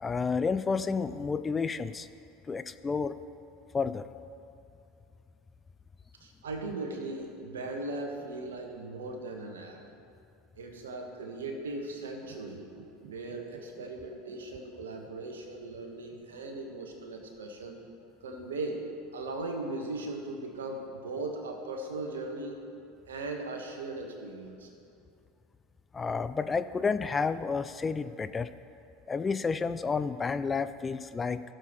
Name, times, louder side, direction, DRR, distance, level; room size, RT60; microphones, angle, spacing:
voice 1, 0.0-2.1 2.5-3.2 3.7-4.1 25.9-28.5 29.1-31.4, left 5 dB, 20° left, 12 dB, 0.3 m, -30 dB
voice 2, 6.2-9.8 10.6-12.7 13.0-17.8 18.2-18.9 19.1-22.7 23.1-24.7, right 2 dB, 75° right, 3 dB, 1.2 m, -38 dB
sound 1, 12.2-15.6 15.8-15.9, right 7 dB, 60° right, 0.8 m, -53 dB
17.0 x 6.8 x 3.1 m, 2.6 s
figure-of-eight pair, 75°, 0 cm